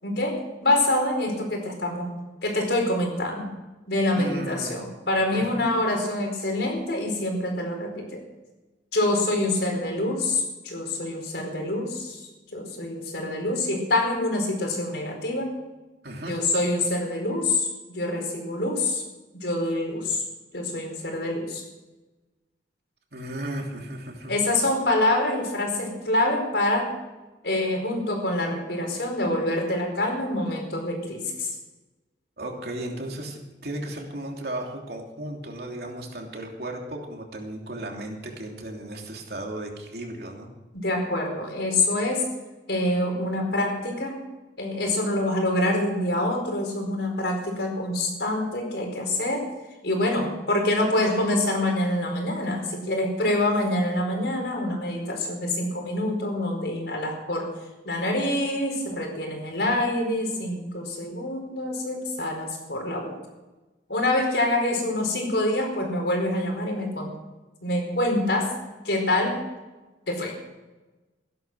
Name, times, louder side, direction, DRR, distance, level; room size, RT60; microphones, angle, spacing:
voice 1, 0.0-2.1 2.4-3.5 3.9-8.2 8.9-12.2 12.5-15.5 16.3-19.0 19.4-20.2 20.5-21.6 24.3-26.9 27.4-31.5 40.7-42.3 42.7-44.2 44.6-49.4 49.8-57.5 57.8-63.2 63.9-67.1 67.6-68.5 68.8-69.4 70.1-70.3, left 1 dB, 75° left, 2 dB, 4.7 m, -26 dB
voice 2, 4.1-4.7 5.3-5.4 16.0-16.4 23.1-24.3 32.4-40.5, right 1 dB, 60° right, 1 dB, 3.0 m, -35 dB
16.5 x 11.5 x 6.3 m, 1.1 s
head